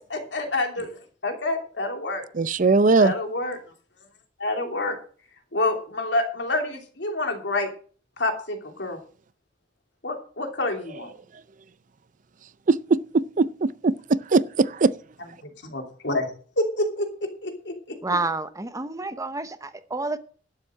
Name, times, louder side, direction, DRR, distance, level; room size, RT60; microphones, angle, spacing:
voice 1, 0.1-0.9 1.2-2.3 3.0-3.6 4.4-5.0 5.5-7.7 8.2-9.0 10.0-11.1 15.4-16.3 16.6-17.9, left 2 dB, 70° left, 3.0 m, -28 dB
voice 2, 2.4-3.1 12.7-12.8 13.4-13.9 14.3-14.9, right 3 dB, 45° right, 0.5 m, -19 dB
voice 3, 18.0-20.2, right 3 dB, 20° right, 0.8 m, -29 dB
12.0 x 7.5 x 6.4 m
head